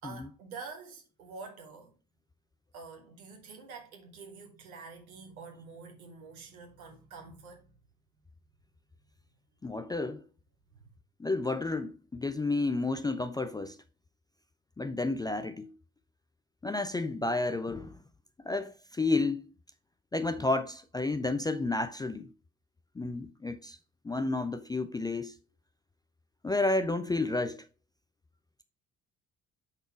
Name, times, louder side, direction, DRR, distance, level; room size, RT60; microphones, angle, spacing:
voice 1, 0.0-2.0 2.7-7.7 10.7-10.9, right 4 dB, 75° right, 1.5 m, -47 dB
voice 2, 9.6-10.2 11.2-13.8 14.8-15.7 16.6-17.9 18.4-19.4 20.1-22.3 23.0-23.8 24.0-25.3 26.4-27.7, left 2 dB, 10° left, 0.4 m, -31 dB
7.8 x 4.2 x 4.6 m
figure-of-eight pair, 45°, 42 cm